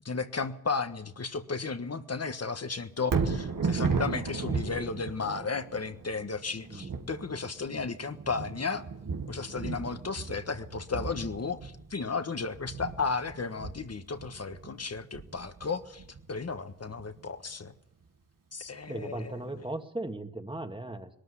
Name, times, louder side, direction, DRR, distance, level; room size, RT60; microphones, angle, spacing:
voice 1, 0.0-8.8 9.3-17.7 18.5-19.4, left 4 dB, 50° left, 9 dB, 1.5 m, -34 dB
Thunder, 3.0-17.2 17.7-17.8, right 5 dB, 85° right, 1.9 m, -35 dB
voice 2, 6.7-7.1 18.9-21.1, right 2 dB, 15° right, 6 dB, 1.9 m, -37 dB
21.0 x 13.0 x 9.9 m, 0.78 s
wide cardioid pair, 85°, 32 cm